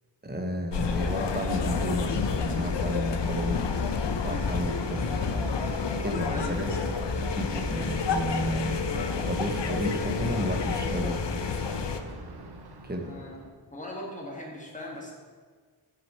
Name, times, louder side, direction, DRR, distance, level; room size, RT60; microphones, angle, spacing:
voice 1, 0.2-3.7 4.2-5.1 6.0-8.7 9.3-11.2 12.8-13.1, equal, 25° right, 3 dB, 0.9 m, -32 dB
sound 1, 0.7-12.0, left 5 dB, 85° left, 0.6 m, -29 dB
Thunder, 4.7-13.5, right 2 dB, 65° right, 0.8 m, -41 dB
voice 2, 6.3-6.9 13.0-15.1, left 1 dB, 20° left, -2 dB, 1.6 m, -40 dB
6.7 x 6.0 x 4.4 m, 1.5 s
wide cardioid pair, 60°, 42 cm